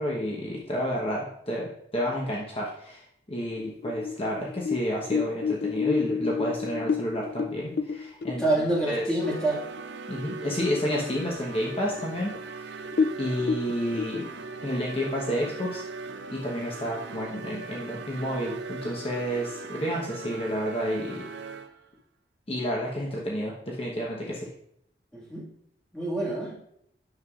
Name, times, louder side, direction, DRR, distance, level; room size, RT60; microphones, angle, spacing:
voice 1, 0.0-3.0 3.3-8.4 8.8-9.0 10.1-12.6 13.2-14.2 14.6-15.8 16.3-21.2 22.5-24.5, equal, 30° left, -3 dB, 0.9 m, -30 dB
sound 1, 3.6-9.4 9.8-9.9 10.3-10.8 11.2-11.3 12.0-12.1 12.3-12.5 12.9-14.0, left 5 dB, 60° left, 0.3 m, -29 dB
voice 2, 8.4-9.6 25.1-25.5 25.9-26.5, right 1 dB, 5° left, -6 dB, 1.8 m, -27 dB
sound 2, 9.2-21.9, right 4 dB, 90° right, 0.5 m, -40 dB
9.6 x 6.8 x 2.4 m, 0.73 s
head